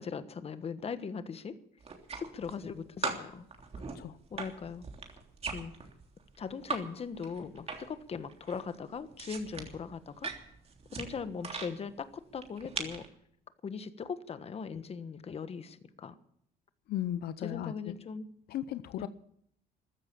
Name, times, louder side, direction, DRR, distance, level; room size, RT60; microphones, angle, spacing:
voice 1, 0.0-1.6 2.2-3.4 4.3-4.8 5.5-5.7 6.4-10.3 10.9-13.0 13.6-16.2 17.4-18.3 19.0-19.1, left 6 dB, 35° left, 12 dB, 1.4 m, -39 dB
sound 1, 1.8-2.7 3.0-6.8 7.1-8.0 8.3-11.7 12.4-13.1, right 5 dB, 35° right, 3.3 m, -39 dB
voice 2, 16.9-17.7 18.5-19.1, left 12 dB, 70° left, 13 dB, 0.8 m, -35 dB
14.5 x 13.0 x 7.1 m, 0.71 s
cardioid pair, 110°, 17 cm